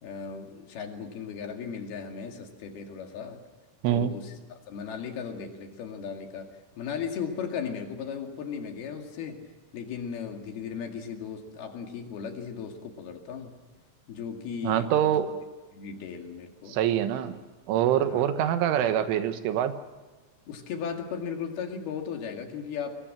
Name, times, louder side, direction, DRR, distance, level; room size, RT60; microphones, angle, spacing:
voice 1, 0.0-3.4 3.9-6.5 6.8-13.6 14.1-14.9 15.7-16.8 18.1-18.3 20.5-23.0, left 6 dB, 60° left, 4 dB, 3.8 m, -36 dB
voice 2, 14.6-15.3 16.7-17.4 17.7-19.7, right 10 dB, 80° right, 10 dB, 3.6 m, -25 dB
24.5 x 23.0 x 7.5 m, 1.3 s
omnidirectional pair, 5.7 m